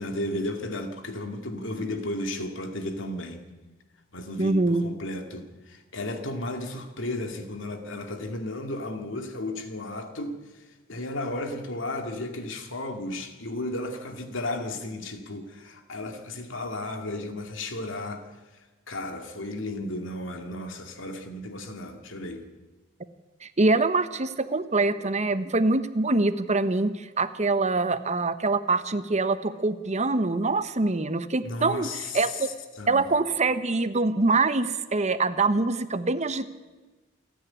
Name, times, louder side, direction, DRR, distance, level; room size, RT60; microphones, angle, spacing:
voice 1, 0.0-3.4 4.1-18.3 18.9-22.5 31.4-32.5 32.8-33.0, left 1 dB, 70° left, 5 dB, 2.4 m, -34 dB
voice 2, 4.4-4.8 23.4-31.9 32.1-32.5 32.9-36.5, right 3 dB, 35° right, 12 dB, 1.0 m, -24 dB
28.0 x 10.0 x 9.9 m, 1.2 s
head